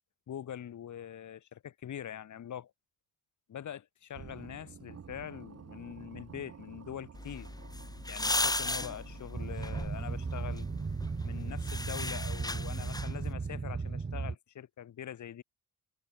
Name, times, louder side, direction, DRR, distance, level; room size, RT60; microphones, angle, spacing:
voice 1, 0.3-2.7 3.5-7.5 8.1-10.7 11.2-15.4, left 10 dB, 65° left, 3.1 m, -43 dB
sound 1, 4.1-11.4, right 7 dB, 50° right, 7.3 m, -51 dB
sound 2, 7.1-13.3, left 2 dB, 10° left, 1.8 m, -37 dB
Boat Water vehicle, 9.3-14.4, right 4 dB, 30° right, 5.7 m, -36 dB
cardioid pair, 105°, 32 cm